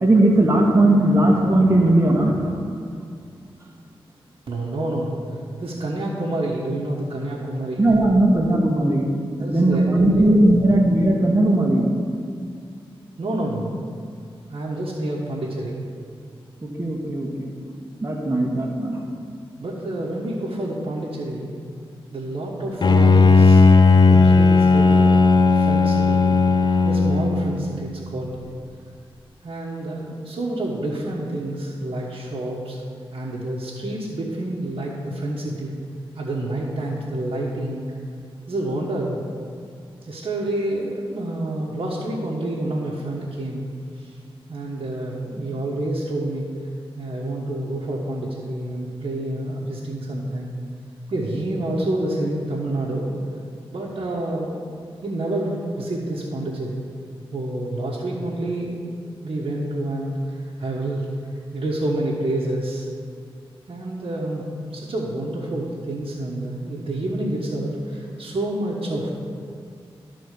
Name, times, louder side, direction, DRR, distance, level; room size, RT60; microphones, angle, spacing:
voice 1, 0.0-2.6 7.8-9.1 9.4-11.9 16.6-17.5 18.0-19.0, right 1 dB, 30° right, -1 dB, 1.4 m, -18 dB
voice 2, 4.5-5.2 5.6-7.9 9.4-10.7 13.2-13.7 14.5-15.9 19.6-21.6 22.1-25.2 25.5-26.4 26.8-28.4 29.4-32.8 33.1-35.7 36.1-37.8 38.5-39.2 40.0-43.6 44.0-44.1 44.5-46.5 46.9-50.5 51.1-53.1 53.7-54.6 55.0-56.8 57.3-58.8 59.2-60.1 60.4-61.1 61.5-62.9 63.7-64.4 64.7-69.1, right 1 dB, 60° right, -7 dB, 1.3 m, -28 dB
Bowed string instrument, 22.8-27.8, left 4 dB, 45° left, 0.5 m, -15 dB
12.5 x 4.2 x 6.7 m, 2.3 s
cardioid pair, 55°, 10 cm